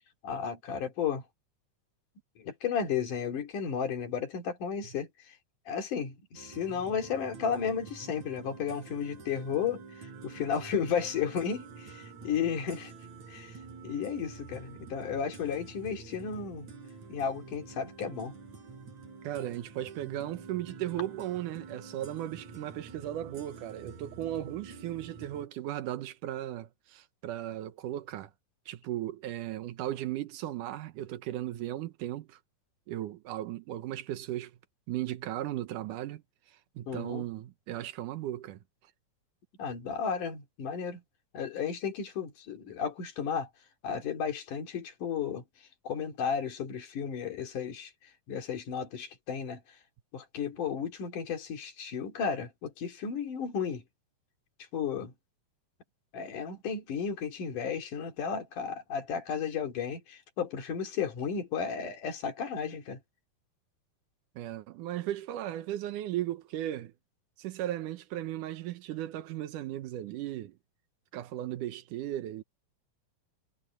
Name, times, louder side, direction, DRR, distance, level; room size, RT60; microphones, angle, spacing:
voice 1, 0.2-1.2 2.4-5.4 5.7-12.9 13.3-13.6 13.8-16.7 17.1-18.4 36.9-37.3 39.6-41.0 41.3-43.5 43.8-45.4 45.8-47.9 48.3-49.6 50.1-53.8 54.7-55.1 56.1-63.0, left 7 dB, 85° left, 4.3 m, -33 dB
sound 1, 6.4-25.5, right 5 dB, 65° right, 5.6 m, -48 dB
voice 2, 19.2-28.3 28.7-32.4 32.9-34.5 34.9-36.2 36.8-38.6 64.4-66.9 67.4-70.5 71.1-72.4, right 13 dB, 85° right, 2.6 m, -36 dB
omnidirectional pair, 3.5 m